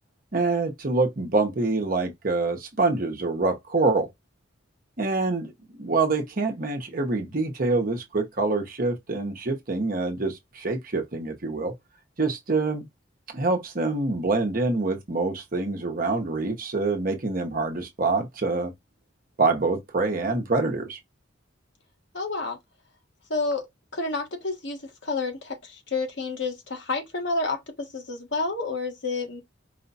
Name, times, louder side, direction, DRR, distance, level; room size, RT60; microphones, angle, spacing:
voice 1, 0.3-4.1 5.0-11.7 12.2-12.9 13.3-18.7 19.4-21.0, right 3 dB, 45° right, 0.9 m, -26 dB
voice 2, 22.1-22.6 23.3-23.6 23.9-29.4, left 3 dB, 65° left, 1.5 m, -29 dB
4.9 x 2.3 x 4.0 m
head